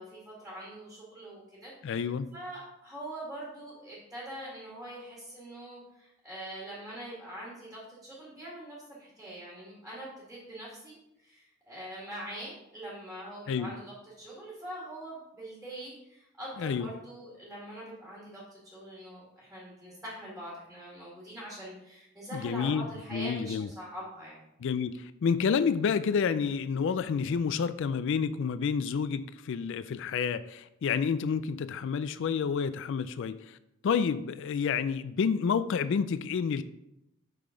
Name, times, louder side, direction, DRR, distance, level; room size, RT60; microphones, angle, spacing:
voice 1, 0.0-24.4, right 1 dB, ahead, -6 dB, 2.1 m, -43 dB
voice 2, 1.8-2.3 13.5-13.7 16.6-16.9 22.3-23.7 24.6-33.6 33.8-36.6, left 6 dB, 65° left, 14 dB, 0.3 m, -29 dB
8.2 x 5.8 x 3.8 m, 0.87 s
head